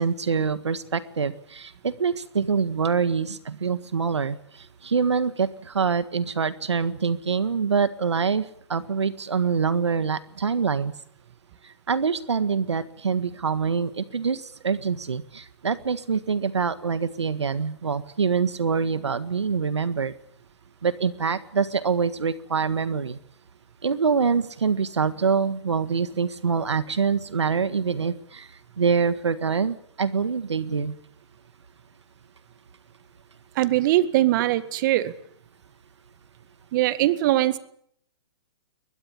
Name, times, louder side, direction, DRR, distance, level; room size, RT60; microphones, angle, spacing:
voice 1, 0.0-4.4 4.8-10.9 11.9-20.1 20.8-23.2 23.8-28.5 28.8-30.9, right 5 dB, 90° right, 13 dB, 1.6 m, -25 dB
voice 2, 33.5-35.1 36.7-37.6, right 15 dB, 45° right, 13 dB, 1.8 m, -21 dB
22.0 x 21.0 x 8.7 m, 0.67 s
hypercardioid pair, 130°, 14 cm